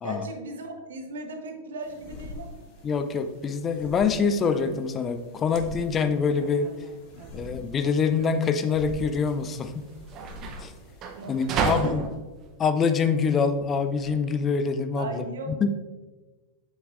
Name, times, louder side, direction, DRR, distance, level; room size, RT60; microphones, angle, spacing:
voice 1, 0.0-2.7 11.2-11.9 15.0-15.6, right 2 dB, 65° right, 5 dB, 0.9 m, -37 dB
sound 1, 1.8-11.6, left 2 dB, 45° left, 1.5 m, -45 dB
voice 2, 2.8-6.7 7.3-9.8 10.6-10.7 11.3-12.0 12.6-15.2 15.6-15.7, left 5 dB, 25° left, 9 dB, 0.4 m, -25 dB
sound 2, 4.1-14.1, right 5 dB, 35° right, 0.7 m, -35 dB
7.8 x 6.2 x 2.5 m, 1.2 s
figure-of-eight pair, 90°, 0 cm